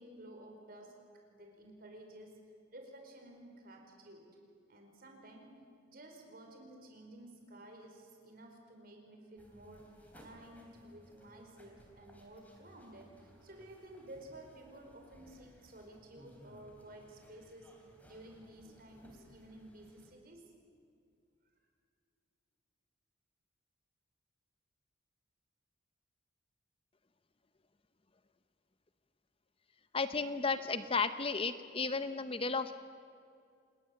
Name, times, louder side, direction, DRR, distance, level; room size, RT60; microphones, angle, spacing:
voice 1, 0.0-2.4 2.7-4.3 4.7-17.7 18.0-20.5, right 1 dB, 50° right, 2 dB, 4.7 m, -53 dB
sound 1, 9.4-20.1, equal, 10° left, 3.5 m, -61 dB
voice 2, 29.9-32.7, left 4 dB, 30° left, 11 dB, 0.7 m, -33 dB
27.5 x 20.0 x 7.7 m, 2.4 s
head